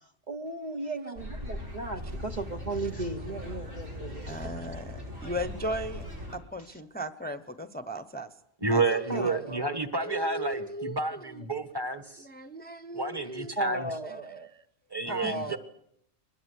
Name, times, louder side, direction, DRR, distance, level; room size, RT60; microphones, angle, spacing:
voice 1, 0.3-4.5 9.1-9.9 13.6-14.5 15.1-15.6, right 2 dB, 40° right, 4 dB, 1.1 m, -35 dB
sound 1, 1.2-6.4, left 1 dB, 80° right, 6.3 m, -39 dB
voice 2, 4.3-6.0 6.3-8.3 8.7-9.3 10.0-11.4 12.2-13.5 14.5-14.6 15.1-15.6, equal, 10° left, 6 dB, 0.9 m, -37 dB
voice 3, 8.6-12.2 12.9-13.9 14.9-15.6, right 3 dB, 20° right, 11 dB, 1.4 m, -30 dB
22.5 x 20.0 x 8.4 m, 0.74 s
omnidirectional pair, 1.2 m